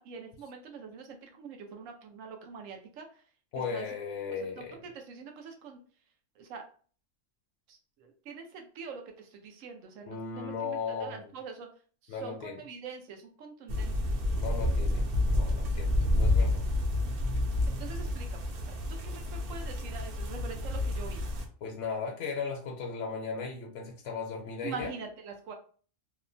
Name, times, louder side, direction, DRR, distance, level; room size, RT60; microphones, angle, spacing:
voice 1, 0.0-3.2 3.7-3.9 4.6-5.8 6.4-6.6 7.7-11.7 12.0-13.9 17.7-21.3 24.6-25.5, right 5 dB, 85° right, 4 dB, 1.0 m, -44 dB
voice 2, 3.5-4.8 10.1-11.3 12.1-12.6 14.3-16.6 21.6-24.9, left 5 dB, 75° left, 1 dB, 0.9 m, -37 dB
sound 1, 13.7-21.5, left 1 dB, 60° right, 0.6 m, -29 dB
2.8 x 2.1 x 2.5 m, 0.42 s
omnidirectional pair, 1.3 m